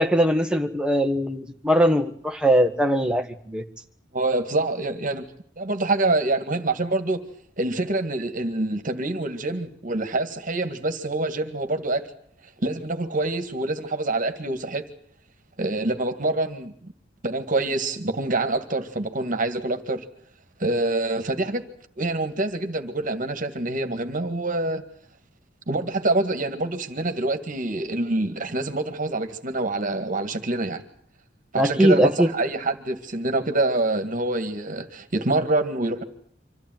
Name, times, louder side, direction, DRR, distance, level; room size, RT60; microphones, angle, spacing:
voice 1, 0.0-3.6 31.5-32.3, equal, 5° right, 4 dB, 1.5 m, -20 dB
voice 2, 4.1-5.2 5.6-7.2 7.6-12.0 12.6-14.8 15.6-16.7 17.2-20.0 20.6-21.6 22.0-24.8 25.7-30.8 31.5-36.0, right 2 dB, 45° right, 8 dB, 2.0 m, -26 dB
26.0 x 15.0 x 9.2 m, 0.62 s
head